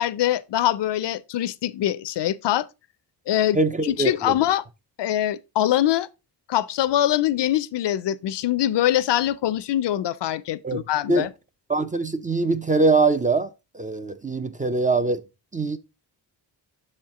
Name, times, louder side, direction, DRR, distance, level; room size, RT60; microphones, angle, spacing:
voice 1, 0.0-2.7 3.3-3.6 3.8-4.6 5.0-6.1 6.5-11.3, left 12 dB, 70° left, 0.5 m, -23 dB
voice 2, 3.5-4.4 10.6-10.8 11.1-11.3 11.7-15.2 15.5-15.8, right 3 dB, 20° right, 0.3 m, -23 dB
6.9 x 4.4 x 3.6 m
wide cardioid pair, 115°, 43 cm